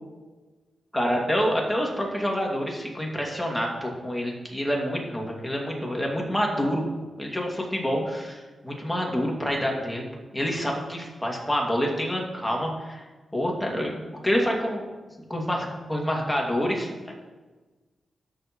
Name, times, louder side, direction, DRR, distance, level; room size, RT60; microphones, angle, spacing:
voice 1, 0.9-6.8 7.2-10.0 10.3-13.1 13.3-13.9 14.2-14.8 15.3-17.1, equal, 10° left, -1 dB, 2.3 m, -27 dB
13.0 x 6.6 x 3.1 m, 1.3 s
cardioid pair, 60°, 0 cm